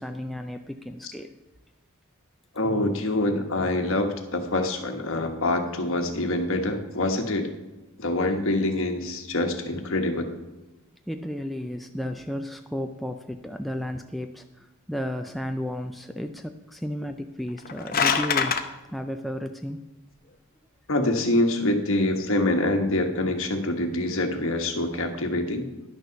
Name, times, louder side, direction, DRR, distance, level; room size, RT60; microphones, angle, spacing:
voice 1, 0.0-1.3 11.1-18.6 18.9-19.8, equal, ahead, 5 dB, 0.3 m, -33 dB
voice 2, 2.5-7.5 8.0-10.3 20.9-25.7, left 1 dB, 60° left, 5 dB, 1.2 m, -25 dB
sound 1, 17.5-18.6, left 6 dB, 40° left, 0.7 m, -24 dB
11.0 x 6.6 x 5.7 m, 1.1 s
head